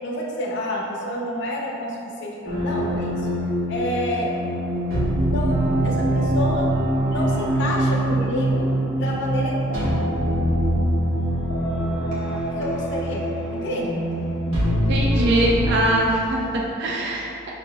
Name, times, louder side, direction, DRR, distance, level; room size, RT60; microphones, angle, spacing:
voice 1, 0.0-3.3 3.7-4.3 5.2-6.7 7.1-9.5 12.5-13.2 13.5-13.9, left 1 dB, 55° left, -2 dB, 0.5 m, -29 dB
sound 1, 2.5-15.7, right 1 dB, 90° right, 1.1 m, -23 dB
voice 2, 14.9-17.5, right 1 dB, 55° right, -3 dB, 0.4 m, -22 dB
6.5 x 2.5 x 2.2 m, 2.9 s
head